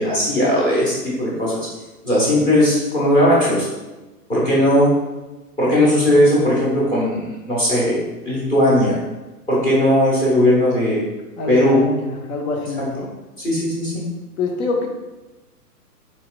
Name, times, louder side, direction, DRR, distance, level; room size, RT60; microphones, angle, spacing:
voice 1, 0.0-1.7 2.0-3.7 4.3-4.9 5.6-8.0 8.2-9.0 9.5-11.0 11.5-11.8 13.4-14.0, left 1 dB, 10° left, -6 dB, 0.5 m, -17 dB
voice 2, 11.4-13.1 14.4-14.9, left 3 dB, 60° left, 2 dB, 0.9 m, -25 dB
4.2 x 3.8 x 2.3 m, 1.1 s
hypercardioid pair, 135°, 48 cm